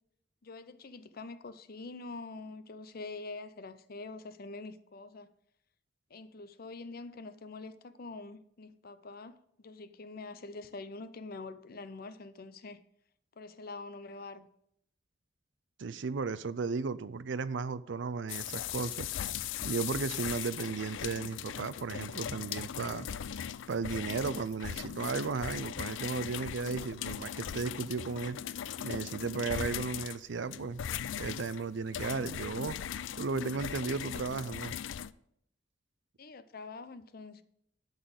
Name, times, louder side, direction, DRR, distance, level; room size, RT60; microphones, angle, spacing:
voice 1, 0.4-5.3 6.1-12.8 13.4-14.5 36.2-37.4, left 3 dB, 55° left, 0.7 m, -45 dB
voice 2, 15.8-19.1 19.6-23.1 23.7-28.4 28.8-30.8 31.2-32.8 33.2-34.7, right 4 dB, 70° right, 0.5 m, -35 dB
sound 1, 18.3-35.1, left 9 dB, 90° left, 0.4 m, -39 dB
11.5 x 4.0 x 7.9 m
head